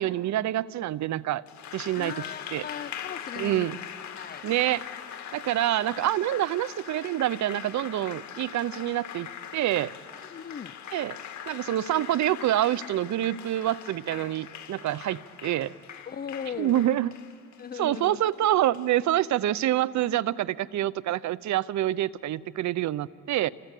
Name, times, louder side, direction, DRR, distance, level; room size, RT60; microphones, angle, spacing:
voice 1, 0.0-1.4 1.7-2.1 2.5-2.6 3.4-3.8 4.4-4.9 5.3-9.9 10.9-11.2 11.5-15.7 16.6-17.1 17.8-23.5, right 13 dB, 70° right, 20 dB, 0.7 m, -26 dB
Applause, 1.5-19.3, left 9 dB, 70° left, 2.2 m, -42 dB
voice 2, 1.9-3.8 4.1-4.5 10.2-10.8 16.1-16.9 17.6-18.2, left 7 dB, 30° left, 13 dB, 0.6 m, -38 dB
28.0 x 23.5 x 8.3 m, 2.5 s
cardioid pair, 90°, 30 cm